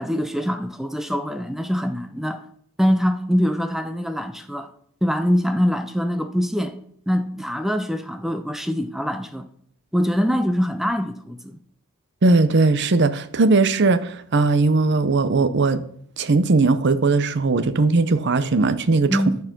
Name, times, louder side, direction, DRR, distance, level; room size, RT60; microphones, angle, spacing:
voice 1, 0.0-2.4 2.8-4.7 5.0-6.8 7.1-9.5 9.9-11.6 19.1-19.4, equal, ahead, 0.4 m, -23 dB
voice 2, 12.2-15.8 16.2-19.2, right 3 dB, 50° right, 0.7 m, -19 dB
11.0 x 4.7 x 5.9 m
head